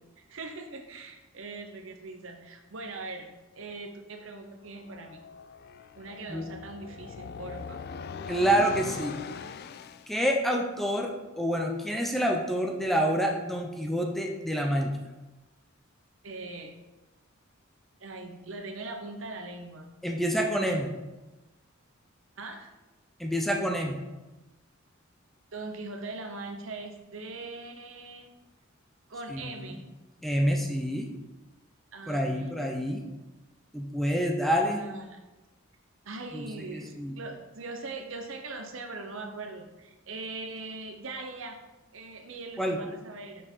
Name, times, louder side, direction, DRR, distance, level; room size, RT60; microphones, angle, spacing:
voice 1, 0.2-3.3 3.5-5.2 6.0-7.9 16.2-16.7 18.0-19.9 20.6-20.7 22.4-22.7 25.5-28.3 29.1-29.8 31.9-32.5 34.6-35.2 36.0-41.6 41.9-43.4, right 3 dB, 65° right, 4 dB, 0.9 m, -41 dB
sound 1, 4.7-10.1, left 5 dB, 50° left, 0.3 m, -41 dB
voice 2, 8.3-9.2 10.1-11.1 11.4-14.9 20.0-20.9 23.2-24.0 29.3-29.7 30.2-31.1 32.1-33.0 33.7-34.8 36.3-36.5 36.7-37.2 42.6-42.8, equal, ahead, 1 dB, 0.7 m, -27 dB
6.3 x 5.7 x 4.6 m, 1.1 s
head